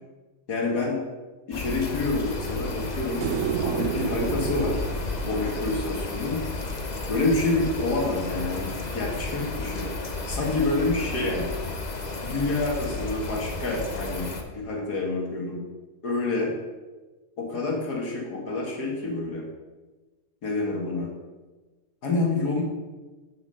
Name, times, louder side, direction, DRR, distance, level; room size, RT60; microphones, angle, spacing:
voice 1, 0.5-1.0 1.5-3.3 3.6-4.8 5.2-6.4 7.1-9.9 10.3-11.5 12.2-15.6 16.0-16.5 17.4-19.5 20.4-21.1 22.0-22.6, left 2 dB, 80° left, -1 dB, 2.4 m, -27 dB
sound 1, 1.5-14.4, left 3 dB, 35° left, 0.8 m, -32 dB
sound 2, 3.2-6.5 9.1-9.2, right 8 dB, 65° right, 0.9 m, -31 dB
6.7 x 6.4 x 6.8 m, 1.3 s
omnidirectional pair, 1.7 m